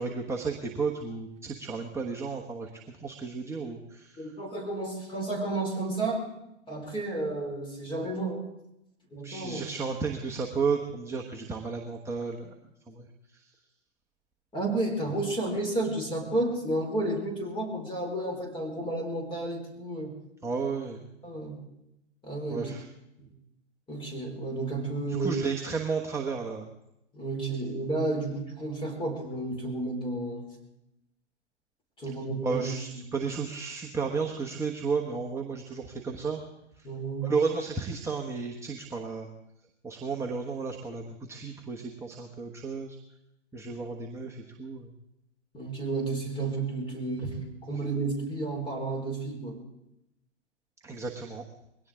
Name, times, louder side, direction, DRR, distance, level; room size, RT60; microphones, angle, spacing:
voice 1, 0.0-4.2 9.2-12.5 12.9-13.1 13.3-13.4 20.4-21.1 22.5-22.9 25.1-26.7 32.4-36.4 36.8-36.9 37.2-39.3 39.8-43.0 43.5-44.9 50.8-51.4, right 5 dB, 10° right, 0 dB, 1.3 m, -33 dB
voice 2, 4.2-6.3 6.7-8.4 9.1-9.6 14.5-20.1 21.2-21.6 22.2-22.7 23.2-23.3 23.9-25.3 27.1-30.5 32.0-32.6 32.9-33.0 36.8-37.3 45.5-47.4 47.7-49.6, right 2 dB, 15° left, 2 dB, 4.6 m, -31 dB
21.5 x 17.5 x 3.7 m, 0.85 s
hypercardioid pair, 115°, 35 cm